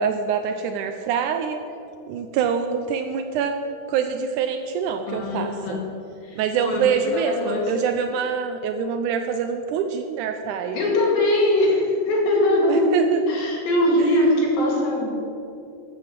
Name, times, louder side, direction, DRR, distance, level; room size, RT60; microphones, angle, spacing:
voice 1, 0.0-1.6 2.1-3.6 3.9-5.8 6.4-10.8 12.7-13.2, right 6 dB, 85° right, 6 dB, 1.8 m, -25 dB
voice 2, 5.1-5.8 6.2-7.7 10.7-12.9 13.3-15.2, left 1 dB, 80° left, -2 dB, 4.1 m, -21 dB
13.5 x 6.7 x 7.5 m, 2.6 s
omnidirectional pair, 4.2 m